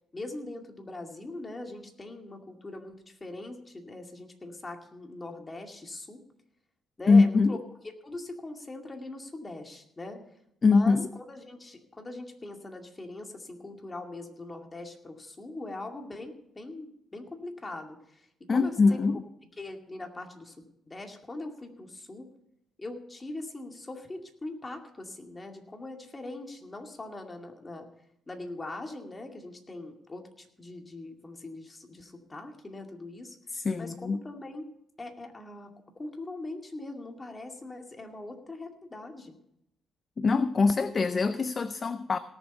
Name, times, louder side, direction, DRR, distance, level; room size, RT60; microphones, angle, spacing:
voice 1, 0.1-6.2 7.0-7.6 8.0-10.2 10.6-19.0 19.6-20.6 20.9-22.3 22.8-27.9 28.3-33.4 33.8-34.7 35.0-39.4, left 2 dB, 25° left, 2.3 m, -41 dB
voice 2, 7.1-7.6 10.6-11.1 18.5-19.2 33.5-34.2 40.2-42.2, left 4 dB, 40° left, 0.5 m, -23 dB
18.0 x 7.2 x 5.6 m
cardioid pair, 90°, 0 cm